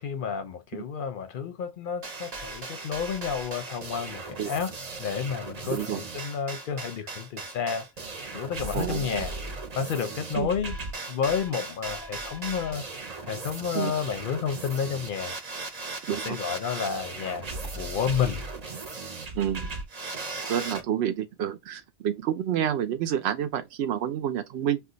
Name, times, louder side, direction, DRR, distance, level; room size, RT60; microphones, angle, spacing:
voice 1, 0.0-4.7 5.0-7.9 8.3-9.4 9.7-10.8 11.1-12.8 13.2-15.4 16.2-18.4, left 7 dB, 60° left, 0.7 m, -31 dB
sound 1, 2.0-20.8, right 3 dB, 45° right, 0.7 m, -37 dB
voice 2, 5.7-6.0 8.7-9.2 10.4-10.5 13.7-13.9 16.1-16.4 19.4-19.7 20.5-24.8, right 10 dB, 80° right, 0.8 m, -29 dB
2.4 x 2.3 x 3.8 m
omnidirectional pair, 1.1 m